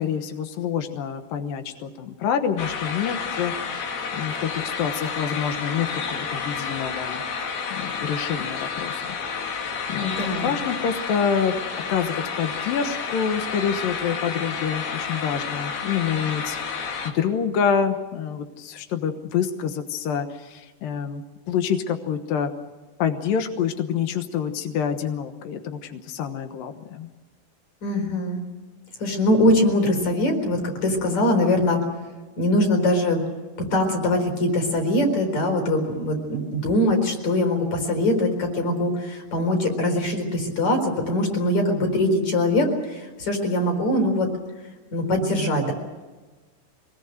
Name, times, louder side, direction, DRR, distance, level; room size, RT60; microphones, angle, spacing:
voice 1, 0.0-3.8 4.1-7.2 7.7-9.6 9.9-10.1 10.4-11.6 11.9-22.5 23.0-27.1, left 7 dB, 80° left, 7 dB, 2.0 m, -27 dB
sound 1, 2.6-17.1, left 6 dB, 55° left, 3.9 m, -30 dB
voice 2, 10.0-10.5 27.8-28.4 29.0-31.8 32.4-33.2 33.7-44.3 44.9-45.7, left 1 dB, 35° left, 4 dB, 5.1 m, -22 dB
24.5 x 20.0 x 7.9 m, 1.3 s
omnidirectional pair, 5.8 m